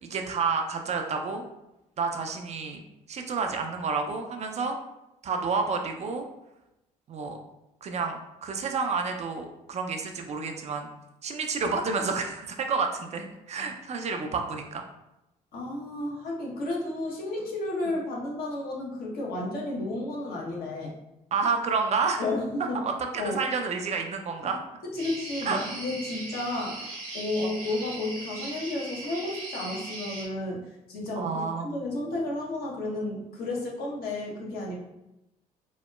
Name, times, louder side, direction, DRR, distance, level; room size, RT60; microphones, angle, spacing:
voice 1, 0.0-1.4 2.0-2.8 3.1-4.8 5.2-6.2 7.1-7.4 7.8-10.9 11.2-14.9 21.3-22.3 22.8-24.6 25.4-25.6 27.4-27.5 31.2-31.7, right 4 dB, 40° right, 4 dB, 0.4 m, -29 dB
voice 2, 15.5-20.9 22.2-22.8 23.2-23.3 24.9-30.6 30.9-34.8, left 2 dB, 60° left, -3 dB, 0.8 m, -32 dB
sound 1, 25.0-30.3, right 2 dB, 90° right, 0.5 m, -39 dB
2.8 x 2.1 x 2.2 m, 0.92 s
hypercardioid pair, 50°, 18 cm